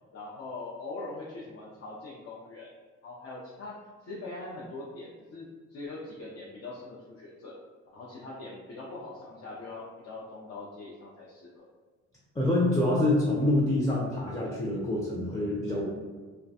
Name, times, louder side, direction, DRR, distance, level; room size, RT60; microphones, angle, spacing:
voice 1, 0.1-2.7 3.0-7.6 7.9-11.7, left 2 dB, 55° left, -5 dB, 0.5 m, -42 dB
voice 2, 12.4-15.8, left 1 dB, 10° left, -5 dB, 0.5 m, -26 dB
2.3 x 2.1 x 2.6 m, 1.4 s
cardioid pair, 90°, 30 cm